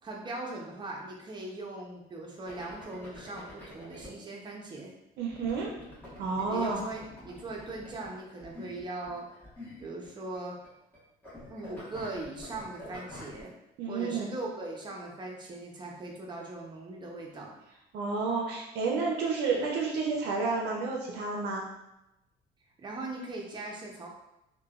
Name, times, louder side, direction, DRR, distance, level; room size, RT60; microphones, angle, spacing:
voice 1, 0.0-4.9 6.5-9.3 9.8-10.6 11.5-13.5 13.9-17.6 22.8-24.1, right 2 dB, 25° right, -1 dB, 0.6 m, -40 dB
sound 1, 2.5-4.1 5.3-10.4 10.6-11.0 11.2-13.4, left 1 dB, 10° left, 1.2 m, -47 dB
voice 2, 5.2-5.7 6.2-6.8 13.8-14.3 17.9-21.7, right 4 dB, 80° right, -1 dB, 0.5 m, -30 dB
3.1 x 2.2 x 2.3 m, 0.89 s
cardioid pair, 110°, 17 cm